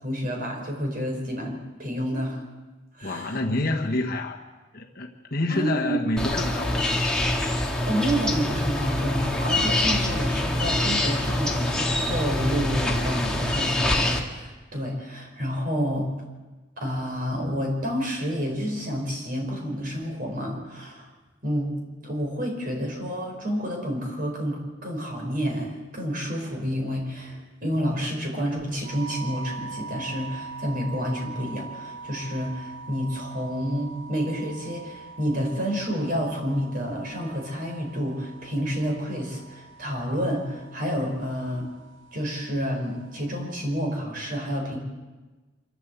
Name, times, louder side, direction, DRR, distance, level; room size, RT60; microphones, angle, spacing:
voice 1, 0.0-2.4 3.0-3.4 5.5-6.3 7.9-16.1 16.8-21.1 21.4-21.7 22.0-41.7 42.1-44.8, equal, 45° right, 1 dB, 5.2 m, -29 dB
voice 2, 3.0-4.4 4.7-7.0, left 2 dB, 50° left, 1 dB, 1.4 m, -28 dB
sound 1, 6.2-14.2, left 1 dB, 5° left, 1.8 m, -25 dB
sound 2, 28.8-43.8, right 4 dB, 80° right, 4.6 m, -43 dB
25.5 x 13.0 x 8.1 m, 1.2 s
head